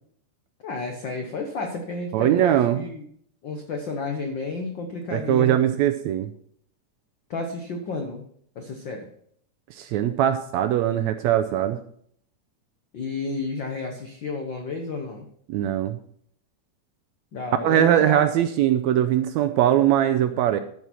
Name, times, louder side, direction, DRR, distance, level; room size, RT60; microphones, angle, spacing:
voice 1, 0.6-3.1 3.4-5.6 7.3-8.2 8.5-9.1 12.9-15.3 17.3-18.3, left 3 dB, 80° left, 3 dB, 1.0 m, -31 dB
voice 2, 2.1-2.8 5.1-6.3 9.7-11.8 15.5-16.0 17.6-20.6, right 11 dB, 80° right, 8 dB, 1.7 m, -21 dB
12.5 x 6.2 x 4.4 m, 0.64 s
omnidirectional pair, 3.6 m